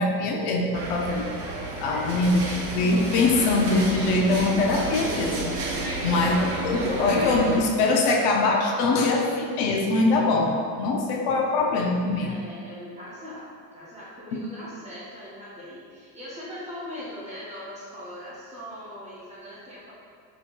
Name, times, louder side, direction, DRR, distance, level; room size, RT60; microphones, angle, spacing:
voice 1, 0.0-1.4 1.8-2.4 2.7-5.5 6.0-6.4 6.6-12.3 14.3-14.4, left 3 dB, 50° left, 1 dB, 0.5 m, -23 dB
sound 1, 0.7-7.6, right 2 dB, 80° right, 0.8 m, -31 dB
voice 2, 1.9-2.3 5.9-6.3 12.2-19.9, left 1 dB, 15° right, -9 dB, 0.4 m, -40 dB
3.0 x 2.3 x 4.2 m, 2.1 s
cardioid pair, 145°, 47 cm